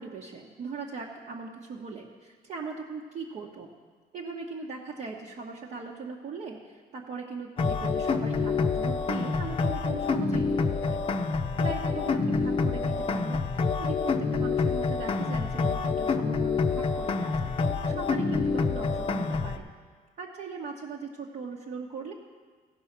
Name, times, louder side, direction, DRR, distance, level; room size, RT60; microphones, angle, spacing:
voice 1, 0.0-3.7 4.1-11.0 11.6-19.6 20.2-22.1, right 4 dB, 50° right, -3 dB, 1.1 m, -39 dB
sound 1, 7.6-19.6, left 4 dB, 35° left, 0.6 m, -27 dB
16.0 x 5.5 x 5.9 m, 1.5 s
cardioid pair, 110°, 17 cm